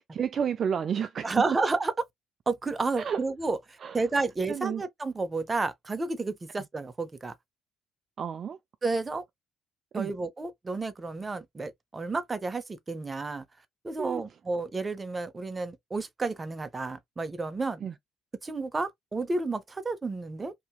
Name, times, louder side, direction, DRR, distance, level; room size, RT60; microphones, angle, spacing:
voice 1, 0.0-1.3 3.0-3.2 3.8-4.0 4.5-4.8 8.2-8.6 9.9-10.1 14.0-14.2 17.8-17.9, right 7 dB, 50° right, 0.3 m, -31 dB
voice 2, 1.2-1.9 2.5-7.3 8.8-9.2 9.9-13.5 13.8-17.8 18.4-20.5, right 3 dB, 25° right, 0.7 m, -31 dB
2.8 x 2.7 x 2.3 m
hypercardioid pair, 60°, 0 cm